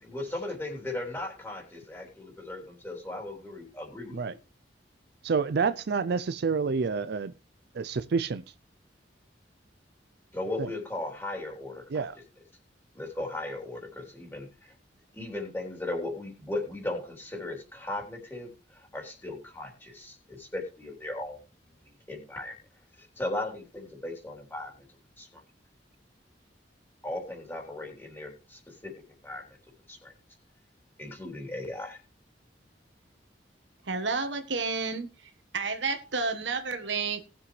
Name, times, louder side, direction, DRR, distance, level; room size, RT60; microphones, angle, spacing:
voice 1, 0.0-4.4 10.3-12.1 13.0-14.5 15.1-21.4 22.1-22.5 23.0-24.7 25.2-25.4 27.0-28.9 29.2-29.4 29.9-30.1 31.0-32.0, left 2 dB, 15° left, 3.5 m, -37 dB
voice 2, 5.2-7.3 7.7-8.4 10.6-10.7 11.9-12.2, right 5 dB, 60° right, 0.5 m, -28 dB
voice 3, 33.9-35.1 35.5-37.3, right 4 dB, 85° right, 1.4 m, -30 dB
19.0 x 7.4 x 3.2 m
head